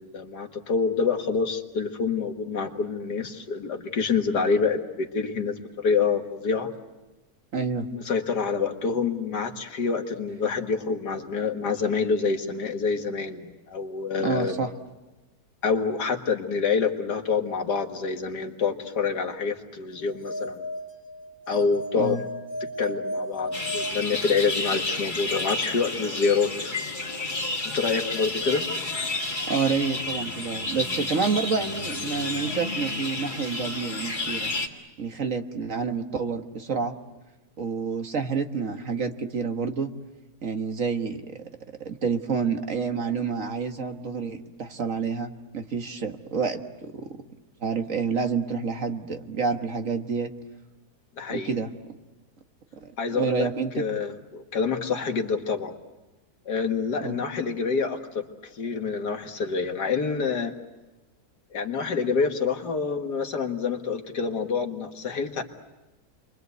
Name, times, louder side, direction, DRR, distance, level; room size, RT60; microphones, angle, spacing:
voice 1, 0.0-6.7 7.9-14.6 15.6-20.6 21.5-22.2 22.6-26.8 27.7-28.7 51.2-51.5 53.0-53.5 53.7-55.7 56.5-58.2 58.5-60.5 61.5-65.4, left 5 dB, 85° left, 5 dB, 2.3 m, -27 dB
voice 2, 7.5-7.9 14.2-14.7 21.9-22.2 29.5-34.5 35.0-37.0 37.6-39.9 40.4-41.4 41.8-47.2 47.6-50.3 51.3-51.7 52.8-53.8 57.0-57.2, right 5 dB, 55° right, 6 dB, 1.8 m, -28 dB
sound 1, 20.0-24.8, equal, 10° left, 1.5 m, -35 dB
sound 2, 23.5-34.7, left 2 dB, 30° left, 2.3 m, -31 dB
30.0 x 23.5 x 8.2 m, 1.1 s
omnidirectional pair, 1.7 m